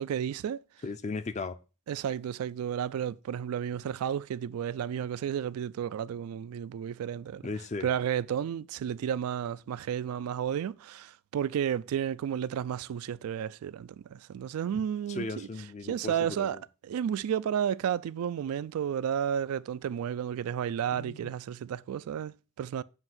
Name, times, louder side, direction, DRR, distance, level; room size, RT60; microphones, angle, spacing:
voice 1, 0.0-0.6 1.9-7.5 7.8-15.5 15.8-22.8, right 9 dB, 85° right, 0.3 m, -32 dB
voice 2, 0.8-1.5 7.4-7.9 14.7-14.8 15.1-16.6 21.0-21.3, left 3 dB, 30° left, 0.4 m, -37 dB
7.6 x 2.6 x 5.8 m
head